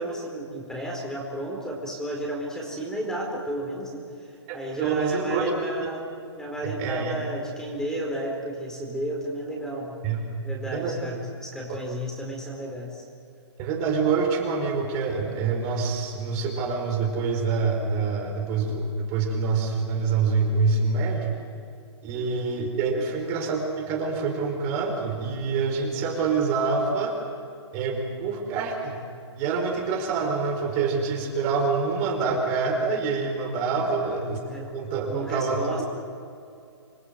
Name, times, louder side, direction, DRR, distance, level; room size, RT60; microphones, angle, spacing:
voice 1, 0.0-6.0 6.3-10.0 10.4-13.0 22.1-22.5 33.9-34.2 34.5-34.7 35.1-35.8, right 1 dB, 5° left, -2 dB, 4.5 m, -33 dB
voice 2, 4.5-5.8 6.6-7.1 10.0-10.2 10.6-11.0 11.7-11.8 13.6-21.4 22.0-27.2 27.7-29.0 29.4-34.4 34.7-35.8, right 4 dB, 30° right, 1 dB, 4.9 m, -26 dB
27.5 x 21.0 x 8.0 m, 2.4 s
hypercardioid pair, 145°, 15 cm